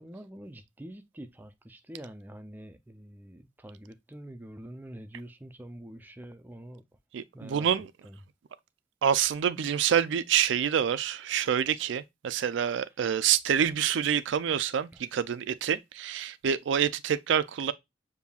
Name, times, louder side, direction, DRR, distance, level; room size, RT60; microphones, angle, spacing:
voice 1, 0.0-6.8 7.3-7.7 8.0-8.2, right 1 dB, 10° right, 0.4 m, -45 dB
voice 2, 7.1-7.9 9.0-17.7, right 8 dB, 75° right, 0.4 m, -27 dB
6.9 x 2.7 x 2.3 m
head